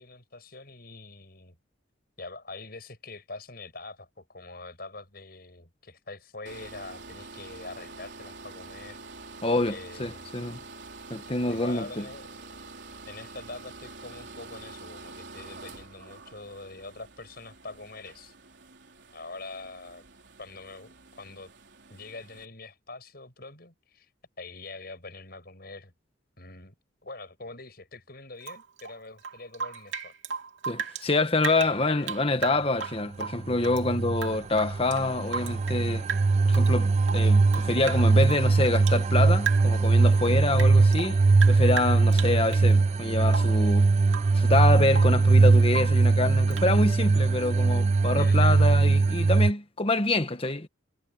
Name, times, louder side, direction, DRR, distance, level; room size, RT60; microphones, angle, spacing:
voice 1, 0.0-1.6 2.2-9.0 9.6-10.3 11.5-12.5 13.0-18.3 19.1-20.0 20.4-21.5 21.9-24.1 24.4-25.9 26.4-26.7 27.0-30.1 31.6-32.3 48.2-48.6, left 3 dB, 50° left, 7.4 m, -44 dB
sound 1, 6.5-22.5, right 3 dB, 60° right, 4.2 m, -46 dB
voice 2, 9.4-10.6 11.1-12.1 30.6-36.1 36.4-41.2 41.5-43.9 44.3-50.7, left 2 dB, 30° left, 1.4 m, -26 dB
Rain / Drip, 28.4-31.1 31.4-33.8 34.1-35.8 36.1-36.7 37.0-39.0 39.4-39.9 40.2-42.7 43.3-43.6 44.1-44.4 44.7-45.2 45.7-46.0 46.5-46.7, right 7 dB, 75° right, 2.9 m, -36 dB
sound 2, 33.2-49.5, right 3 dB, 35° right, 0.3 m, -21 dB
head